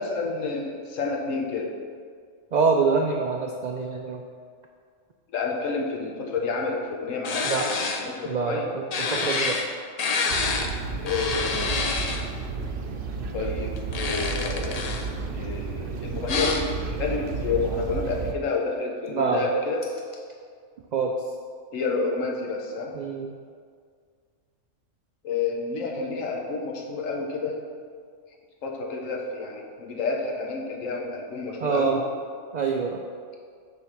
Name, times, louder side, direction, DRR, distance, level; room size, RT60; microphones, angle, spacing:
voice 1, 0.0-1.7 5.3-8.7 11.0-11.6 13.3-15.0 15.3-19.8 21.7-22.9 25.2-27.6 28.6-32.0, left 4 dB, 90° left, 0 dB, 1.3 m, -29 dB
voice 2, 2.5-4.2 7.4-7.7 8.3-9.6 19.1-19.5 20.9-21.1 22.9-23.3 31.6-32.0 32.5-33.0, right 5 dB, 80° right, 2 dB, 0.4 m, -25 dB
sound 1, 7.2-8.0 8.9-9.7 10.0-10.7 11.1-12.2 13.8-15.1 16.3-16.6, left 4 dB, 50° left, 0.4 m, -27 dB
sound 2, 10.3-18.3, right 4 dB, 60° right, 0.8 m, -32 dB
7.0 x 3.5 x 6.0 m, 2.1 s
omnidirectional pair, 1.3 m